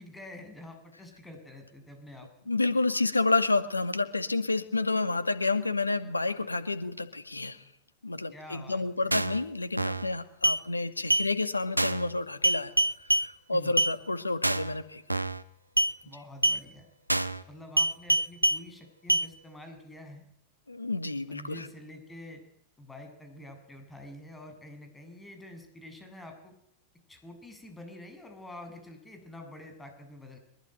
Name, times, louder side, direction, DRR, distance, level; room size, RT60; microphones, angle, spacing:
voice 1, 0.0-2.5 8.3-9.1 13.5-13.8 16.0-16.9 17.5-20.2 21.3-22.4 22.8-26.5 27.1-30.4, left 1 dB, 10° left, 6 dB, 7.9 m, -47 dB
voice 2, 2.5-7.6 8.0-12.7 13.2-15.0 20.7-21.7, left 3 dB, 80° left, 12 dB, 2.1 m, -29 dB
sound 1, 9.1-9.4 9.8-10.1 10.4-10.6 11.1-11.3 11.8-12.1 12.4-13.3 13.8-13.9 14.4-14.7 15.1-15.4 15.8-15.9 16.4-16.6 17.1-17.4 17.8-18.6 19.1-19.3, right 1 dB, 85° right, 1.1 m, -25 dB
24.0 x 22.0 x 9.4 m, 0.74 s
figure-of-eight pair, 90°, 0 cm